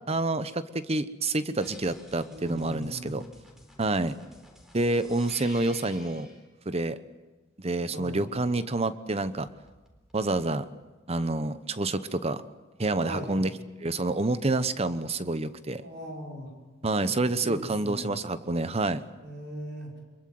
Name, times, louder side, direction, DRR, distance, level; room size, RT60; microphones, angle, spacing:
voice 1, 0.1-3.2 3.8-4.1 4.7-6.3 6.7-7.0 7.6-9.5 10.1-10.7 11.1-12.4 12.8-13.5 13.8-15.8 16.8-19.0, right 2 dB, 30° right, 13 dB, 0.9 m, -28 dB
sound 1, 1.6-6.4 9.2-10.3, left 1 dB, ahead, 4.1 m, -51 dB
voice 2, 2.3-3.2 7.9-8.3 13.0-13.4 15.8-16.5 17.0-18.1 19.2-20.0, equal, 55° right, 0 dB, 6.0 m, -39 dB
24.5 x 22.5 x 7.9 m, 1.2 s
head